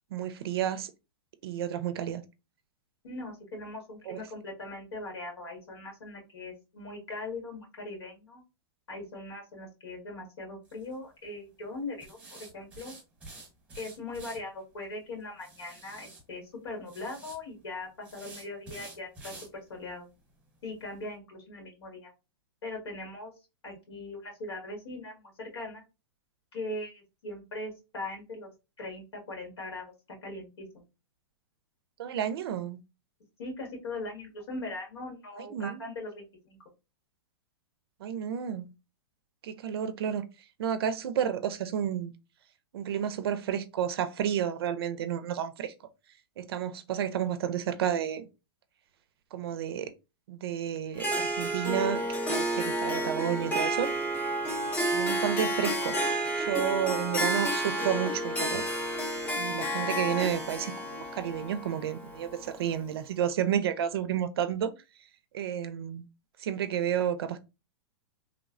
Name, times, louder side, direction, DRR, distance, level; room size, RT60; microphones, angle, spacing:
voice 1, 0.1-0.9 1.4-2.2 4.1-4.2 32.0-32.8 35.4-35.8 38.0-38.7 39.4-40.2 40.6-42.1 42.7-45.7 46.4-48.3 49.3-49.9 50.3-52.0 52.3-53.9 54.9-56.0 56.4-58.6 59.4-64.7 65.3-66.1 66.4-67.4, right 9 dB, 70° right, 0.4 m, -31 dB
voice 2, 3.0-8.4 8.9-12.9 13.7-20.1 20.6-22.1 22.6-23.3 23.6-25.8 26.5-28.5 28.8-29.9 30.2-30.8 33.4-36.6, left 2 dB, 90° left, 1.6 m, -40 dB
sound 1, 10.7-10.9 12.0-14.4 15.4-16.2 16.9-17.4 18.0-19.5 19.9-20.0 20.4-20.5 20.9-21.0, right 2 dB, 10° right, 0.9 m, -48 dB
Harp, 51.0-62.8, right 1 dB, 10° left, 0.5 m, -31 dB
3.0 x 2.0 x 2.4 m
hypercardioid pair, 150°, 13 cm